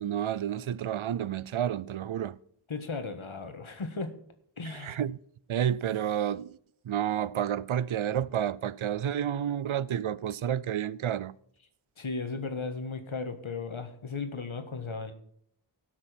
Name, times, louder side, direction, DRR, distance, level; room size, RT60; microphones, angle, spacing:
voice 1, 0.0-2.4 4.6-5.2 5.5-6.6 6.8-11.4, right 10 dB, 80° right, 0.5 m, -30 dB
voice 2, 2.7-4.2 4.6-5.0 12.0-15.1, left 4 dB, 80° left, 1.5 m, -36 dB
17.0 x 6.1 x 4.4 m
wide cardioid pair, 45°, 47 cm